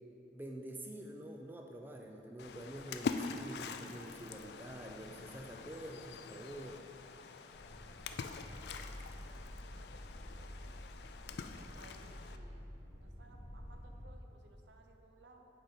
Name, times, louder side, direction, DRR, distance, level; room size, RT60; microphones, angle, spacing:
voice 1, 0.3-6.8, right 1 dB, 10° right, 1 dB, 0.4 m, -47 dB
Splash splatter, 2.4-12.4, left 5 dB, 65° left, 0.3 m, -45 dB
sound 1, 7.5-14.1, equal, 35° right, 1.5 m, -50 dB
voice 2, 7.8-9.6 10.3-10.6 11.3-12.6 12.9-15.5, right 2 dB, 85° right, 3 dB, 0.7 m, -63 dB
8.4 x 5.0 x 4.0 m, 2.8 s
head